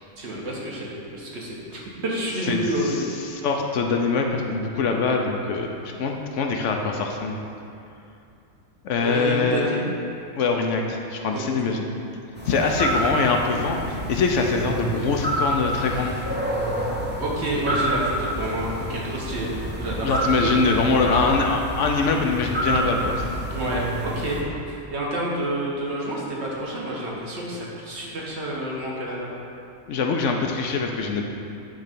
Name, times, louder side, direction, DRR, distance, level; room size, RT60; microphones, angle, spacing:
voice 1, 0.2-3.2 9.0-9.8 11.3-11.4 17.2-19.5 19.7-20.2 23.5-24.4 24.7-29.3, right 1 dB, 50° right, -4 dB, 1.4 m, -29 dB
voice 2, 3.2-5.7 6.0-7.5 8.8-9.7 10.3-11.9 12.5-16.2 20.0-23.3 29.9-31.2, left 4 dB, 65° left, 2 dB, 0.9 m, -23 dB
sound 1, 12.4-24.4, right 1 dB, 10° right, 0.5 m, -28 dB
9.1 x 3.2 x 5.2 m, 2.6 s
omnidirectional pair, 1.5 m